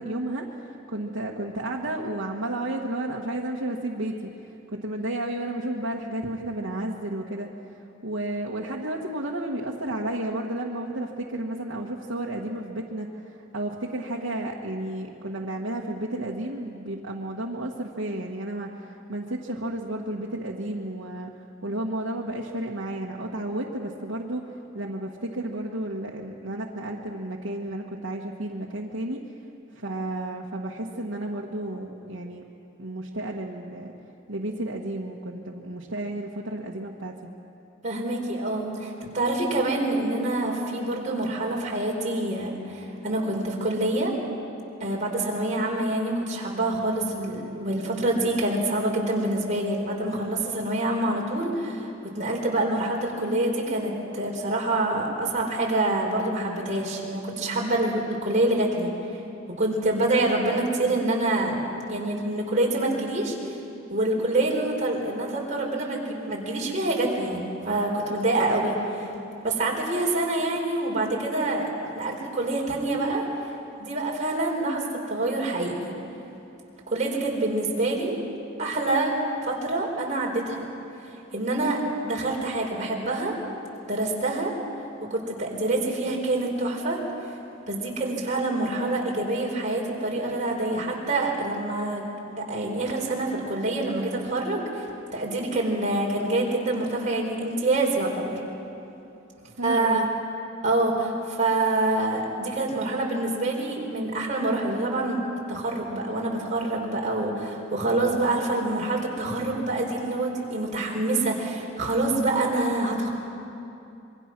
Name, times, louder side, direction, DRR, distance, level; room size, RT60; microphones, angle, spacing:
voice 1, 0.0-4.3 4.7-7.5 8.0-21.3 21.6-24.4 24.7-29.2 29.7-32.4 32.8-33.9 34.3-37.3 99.6-100.1, right 1 dB, 90° right, -3 dB, 1.6 m, -32 dB
voice 2, 37.8-44.1 44.8-58.9 59.6-63.5 63.9-68.8 69.4-71.7 71.9-73.2 73.8-75.9 76.9-78.2 78.6-80.7 81.3-83.3 83.9-84.5 85.1-87.0 87.7-92.1 92.4-98.4 99.6-100.1 100.6-105.2 105.5-113.1, right 2 dB, 40° right, -2 dB, 4.4 m, -26 dB
26.0 x 23.0 x 6.1 m, 2.8 s
head